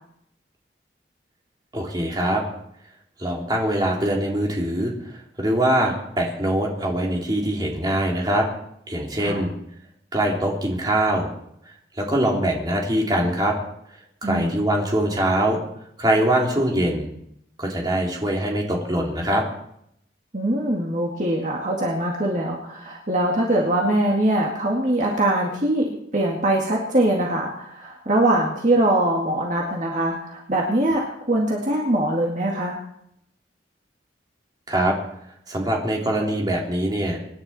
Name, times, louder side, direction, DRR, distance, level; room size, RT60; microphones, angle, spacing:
voice 1, 1.7-2.4 3.2-8.5 8.9-9.5 10.1-11.3 12.0-13.5 14.2-15.6 16.0-17.1 17.6-19.4 34.7-34.9 35.5-37.2, right 1 dB, 20° right, -1 dB, 3.0 m, -23 dB
voice 2, 14.2-14.6 20.3-25.9 26.1-32.8, right 1 dB, 40° right, -2 dB, 2.1 m, -22 dB
25.0 x 11.0 x 4.3 m, 0.74 s
head